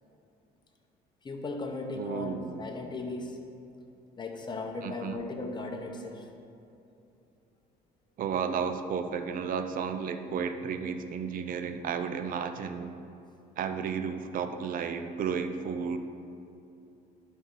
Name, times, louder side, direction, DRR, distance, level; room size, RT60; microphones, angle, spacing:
voice 1, 1.2-3.4 4.2-6.3, left 3 dB, 25° left, 3 dB, 0.9 m, -37 dB
voice 2, 2.0-2.6 4.8-5.2 8.2-12.9 13.6-16.0, right 6 dB, 55° right, 8 dB, 0.5 m, -33 dB
11.0 x 4.2 x 3.8 m, 2.7 s
cardioid pair, 110°, 17 cm